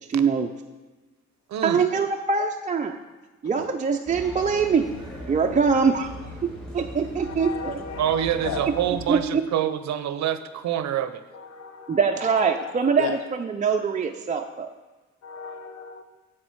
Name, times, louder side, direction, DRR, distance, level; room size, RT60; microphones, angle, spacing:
voice 1, 0.1-0.5 1.6-2.9 3.4-4.8 5.3-7.8 8.7-8.8 9.1-9.4 11.9-14.7, right 5 dB, 25° right, 3 dB, 0.4 m, -23 dB
voice 2, 1.5-1.9 8.0-11.2, right 10 dB, 65° right, 12 dB, 0.6 m, -26 dB
sound 1, 4.1-9.2, equal, 5° left, 2.8 m, -40 dB
voice 3, 7.2-8.9 11.3-13.2 15.2-16.0, left 7 dB, 60° left, 8 dB, 0.8 m, -36 dB
7.6 x 6.3 x 4.6 m, 1.2 s
cardioid pair, 90°, 30 cm